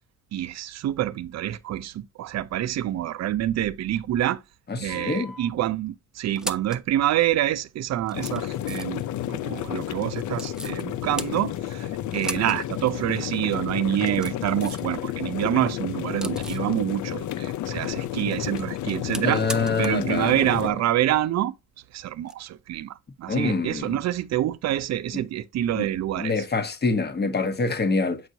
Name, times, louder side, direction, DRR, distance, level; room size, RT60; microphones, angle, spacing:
voice 1, 0.3-4.4 4.8-9.0 9.3-19.5 19.8-21.5 21.9-26.4, right 12 dB, 60° right, 0.6 m, -27 dB
voice 2, 4.7-5.3 19.2-20.3 23.3-24.0 25.7-25.9 26.2-28.2, left 3 dB, 35° left, 1.1 m, -25 dB
sound 1, 4.9-5.5 6.2-6.9 7.6-7.7 8.0-9.1 10.3-10.8 11.2-11.8 12.1-12.6 12.9-13.0 13.8-14.9 15.3-16.7 18.1-20.1 20.3-20.4 22.2-22.3, right 1 dB, ahead, 0.5 m, -38 dB
sound 2, 8.1-20.7, left 12 dB, 75° left, 0.6 m, -31 dB
7.8 x 4.5 x 2.7 m
cardioid pair, 90°, 30 cm